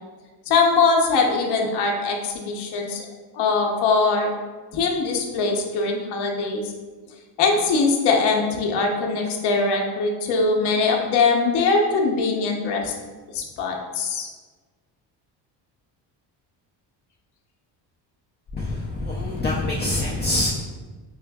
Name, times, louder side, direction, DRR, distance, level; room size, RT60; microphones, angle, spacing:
voice 1, 0.5-3.1 3.3-4.3 4.7-6.6 7.4-12.9 13.3-14.3, left 4 dB, 65° left, 1 dB, 0.8 m, -21 dB
voice 2, 18.5-20.5, left 2 dB, 25° left, -3 dB, 0.4 m, -25 dB
5.5 x 2.5 x 2.2 m, 1.4 s
cardioid pair, 105°, 44 cm